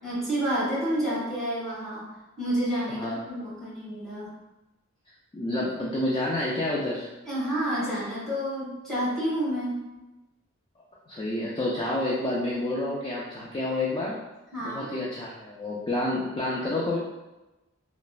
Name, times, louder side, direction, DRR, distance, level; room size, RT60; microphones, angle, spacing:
voice 1, 0.0-2.1 2.4-4.3 7.2-9.8 14.5-14.9, right 1 dB, ahead, -9 dB, 1.3 m, -29 dB
voice 2, 2.9-3.4 5.3-7.1 11.1-14.2 14.6-17.0, left 1 dB, 20° left, -5 dB, 0.3 m, -29 dB
3.1 x 2.0 x 2.3 m, 1.0 s
head